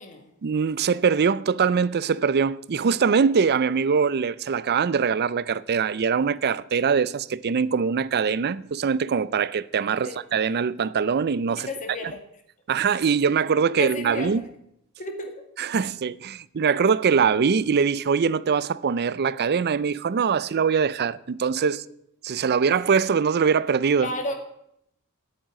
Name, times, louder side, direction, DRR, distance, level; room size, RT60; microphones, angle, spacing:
voice 1, 0.4-11.7 12.0-12.1 12.7-14.4 15.6-21.8 22.2-24.1, right 6 dB, 50° right, 0.5 m, -23 dB
voice 2, 11.6-12.2 13.8-14.3 15.0-15.3 24.0-24.3, left 1 dB, 35° left, 2.1 m, -32 dB
8.9 x 8.7 x 9.1 m
head